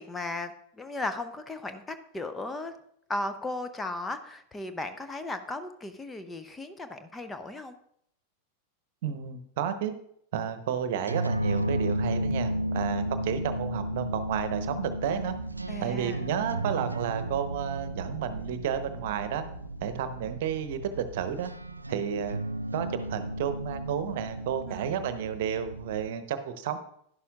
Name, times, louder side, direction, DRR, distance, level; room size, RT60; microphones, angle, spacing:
voice 1, 0.0-2.7 3.1-7.8 12.7-13.0 15.7-16.2 24.6-24.9, left 2 dB, 15° left, 9 dB, 0.7 m, -36 dB
voice 2, 9.0-9.9 10.3-15.3 15.8-19.4 19.8-21.5 21.9-22.4 22.7-26.8, right 8 dB, 55° right, 10 dB, 0.9 m, -31 dB
sound 1, 10.9-26.1, right 1 dB, 80° right, 0.4 m, -33 dB
11.5 x 11.0 x 2.4 m, 0.69 s
figure-of-eight pair, 90°, 0 cm